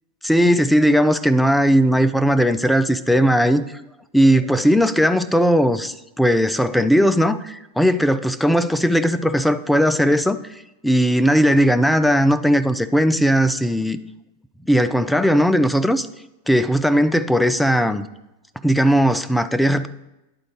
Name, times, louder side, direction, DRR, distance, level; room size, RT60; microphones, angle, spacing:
voice 1, 0.2-3.6 4.1-10.4 10.8-14.0 14.7-16.1 16.5-18.1 18.6-19.9, equal, ahead, 0.4 m, -17 dB
10.5 x 3.8 x 4.8 m
figure-of-eight pair, 90°, 0 cm